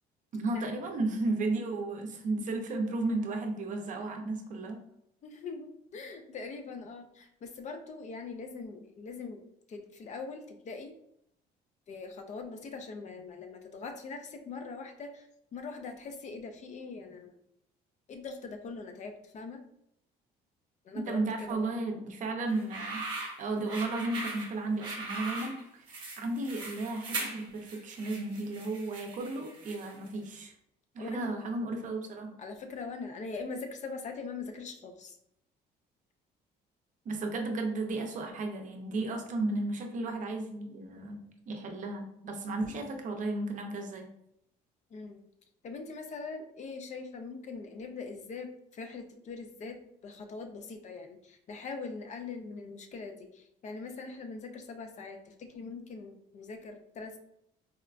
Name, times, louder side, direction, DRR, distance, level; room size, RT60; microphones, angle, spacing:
voice 1, 0.3-4.8 20.9-23.0 23.4-30.5 30.9-32.3 37.1-44.1, right 2 dB, 50° right, 3 dB, 0.6 m, -34 dB
voice 2, 5.2-9.4 9.7-10.9 11.9-17.3 18.1-19.6 20.8-21.2 21.5-21.7 31.0-31.3 32.4-35.2 44.9-45.2 45.6-49.8 50.0-57.2, left 4 dB, 45° left, 5 dB, 0.5 m, -42 dB
sound 1, 22.5-30.1, right 3 dB, 30° right, 1.1 m, -40 dB
4.2 x 2.1 x 2.4 m, 0.77 s
cardioid pair, 110°, 17 cm